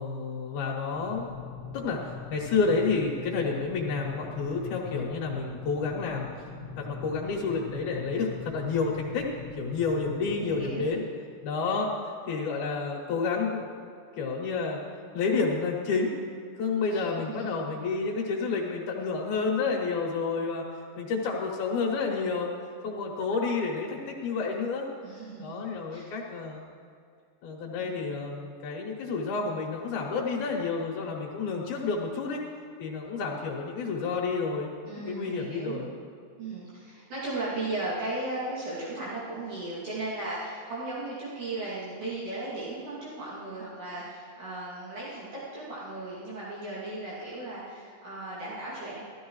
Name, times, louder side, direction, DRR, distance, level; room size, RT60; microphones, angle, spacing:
voice 1, 0.0-1.3 1.7-6.4 6.8-9.3 9.6-11.0 11.4-11.9 12.3-13.9 14.2-14.8 15.1-16.1 16.6-20.7 21.0-22.5 22.8-24.9 25.4-26.6 27.4-32.4 32.8-34.7 35.1-35.9, left 4 dB, 75° left, -1 dB, 2.5 m, -30 dB
sound 1, 0.9-10.8, left 5 dB, 5° right, 1.2 m, -42 dB
voice 2, 10.4-10.9 16.9-17.5 25.0-25.6 25.9-26.0 27.7-27.9 34.9-35.9 36.4-49.0, right 2 dB, 75° right, -10 dB, 4.1 m, -36 dB
15.0 x 13.0 x 3.2 m, 2.3 s
omnidirectional pair, 3.5 m